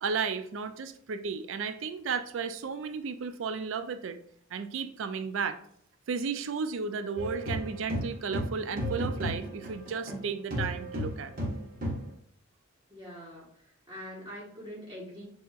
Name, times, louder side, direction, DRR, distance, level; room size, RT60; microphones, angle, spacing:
voice 1, 0.0-4.2 4.5-5.6 6.1-11.3, right 5 dB, 70° right, 10 dB, 0.4 m, -33 dB
sound 1, 7.2-10.2 10.5-12.1, equal, 45° right, 1.2 m, -34 dB
voice 2, 12.9-15.2, equal, 20° right, -7 dB, 1.5 m, -44 dB
6.8 x 2.9 x 2.4 m, 0.63 s
head